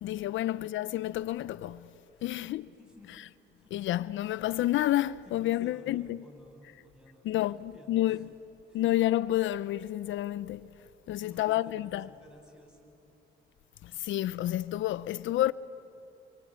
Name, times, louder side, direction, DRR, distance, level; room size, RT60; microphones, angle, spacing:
voice 1, 0.0-1.9 2.2-2.7 3.7-6.2 7.2-8.3 8.7-10.7 11.1-12.1 13.8-15.5, left 14 dB, 75° left, 0.5 m, -29 dB
voice 2, 2.1-2.4 2.8-3.1 3.5-3.7 5.2-8.3 8.7-8.9 11.1-13.0, equal, 5° right, 7.4 m, -56 dB
28.0 x 24.0 x 8.7 m
cardioid pair, 90°, 20 cm